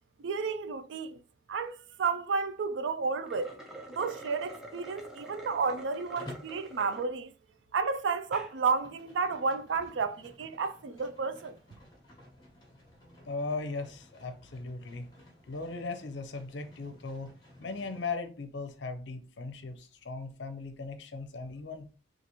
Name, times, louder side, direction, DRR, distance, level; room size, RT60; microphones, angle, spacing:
voice 1, 0.2-1.2 1.5-3.5 3.9-7.3 7.7-11.6, right 4 dB, 70° right, 0.4 m, -32 dB
sound 1, 3.1-7.1 7.6-7.7 8.2-8.5, right 1 dB, ahead, 0.5 m, -47 dB
Livestock farm animals working animals, 6.2-6.6 8.3-18.1, left 1 dB, 20° left, 1.1 m, -53 dB
voice 2, 13.3-15.1 15.5-17.3 17.6-21.9, left 3 dB, 65° left, 0.6 m, -38 dB
4.0 x 2.4 x 2.9 m
head